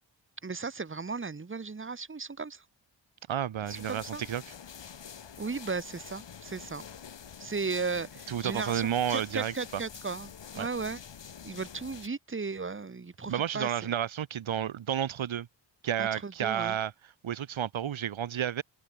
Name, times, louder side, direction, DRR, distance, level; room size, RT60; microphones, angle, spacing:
voice 1, 0.4-2.6 3.7-4.2 5.4-6.8 7.4-11.0 11.4-13.7 16.0-16.8, right 4 dB, 25° right, 2.1 m, -36 dB
voice 2, 3.3-4.5 8.3-9.8 10.6-10.7 13.3-15.5 15.8-16.9 17.2-18.6, right 10 dB, 85° right, 2.3 m, -31 dB
sound 1, 3.7-12.1, left 7 dB, 65° left, 4.9 m, -47 dB
wide cardioid pair, 110°, 46 cm